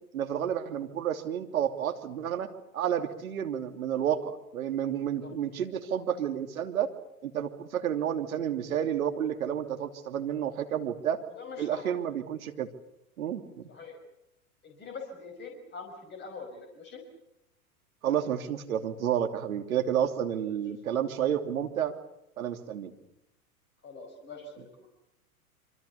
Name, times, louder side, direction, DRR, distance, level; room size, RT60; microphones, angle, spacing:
voice 1, 0.1-6.9 7.2-11.2 11.6-12.7 13.2-13.6 18.0-21.9 22.4-22.9, right 9 dB, 70° right, 7 dB, 3.0 m, -30 dB
voice 2, 11.4-11.8 13.7-14.0 14.6-17.0 23.8-24.9, left 4 dB, 25° left, 2 dB, 5.6 m, -43 dB
26.5 x 25.5 x 6.9 m, 0.83 s
hypercardioid pair, 100°, 44 cm